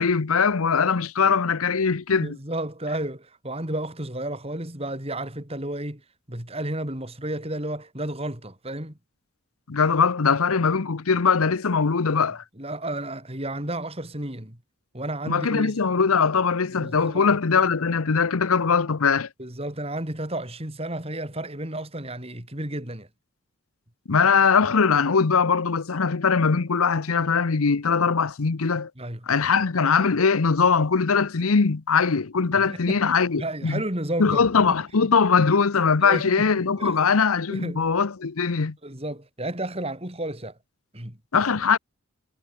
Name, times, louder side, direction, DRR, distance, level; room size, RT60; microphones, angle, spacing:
voice 1, 0.0-2.4 9.7-12.4 15.3-19.3 24.1-28.9 29.3-33.8 34.2-38.7 41.3-41.8, left 5 dB, 90° left, 0.8 m, -21 dB
voice 2, 2.2-6.0 6.3-9.0 12.2-14.6 14.9-15.8 16.7-17.3 19.4-23.1 29.0-29.3 32.6-33.0 33.4-34.7 36.0-36.5 36.8-37.0 37.5-37.9 38.8-40.6 40.9-41.2, right 1 dB, 30° right, 4.0 m, -32 dB
head